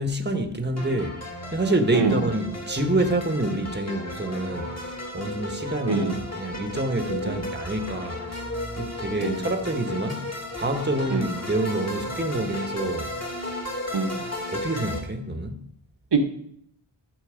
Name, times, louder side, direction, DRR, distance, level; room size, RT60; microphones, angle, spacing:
voice 1, 0.0-6.1 6.4-8.2 8.8-13.1 14.5-15.6, right 1 dB, 25° right, 1.3 m, -27 dB
sound 1, 0.8-15.0, left 1 dB, 35° left, 2.7 m, -34 dB
voice 2, 1.9-2.3 5.9-6.2 7.2-7.4 9.2-9.6 11.1-11.4 13.9-14.2 16.1-16.3, right 4 dB, 65° right, 1.5 m, -25 dB
14.0 x 6.9 x 5.1 m
wide cardioid pair, 75°, 44 cm